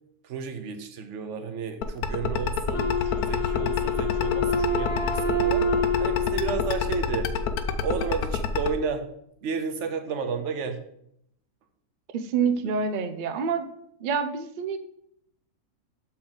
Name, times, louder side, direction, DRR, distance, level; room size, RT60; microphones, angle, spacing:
voice 1, 0.2-5.7 6.0-7.3 7.8-9.1 9.4-10.8 12.6-12.7, right 6 dB, 60° right, 7 dB, 0.9 m, -32 dB
sound 1, 1.8-8.7, left 8 dB, 85° left, 1.1 m, -27 dB
Wind instrument woodwind instrument, 2.7-7.7, left 2 dB, 55° left, 1.6 m, -28 dB
voice 2, 12.1-13.6 14.0-14.8, right 6 dB, 85° right, 8 dB, 0.4 m, -27 dB
7.5 x 4.3 x 3.8 m, 0.73 s
omnidirectional pair, 1.5 m